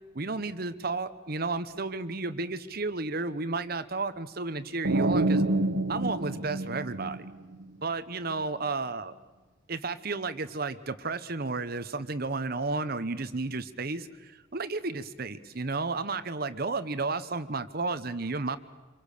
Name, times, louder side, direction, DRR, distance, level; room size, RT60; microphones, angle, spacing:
voice 1, 0.1-5.4 5.9-7.3 7.8-9.1 9.7-18.6, right 3 dB, 50° right, 12 dB, 1.1 m, -32 dB
sound 1, 4.8-7.6, right 2 dB, 80° right, 1.4 m, -27 dB
27.0 x 23.5 x 6.7 m, 1.3 s
head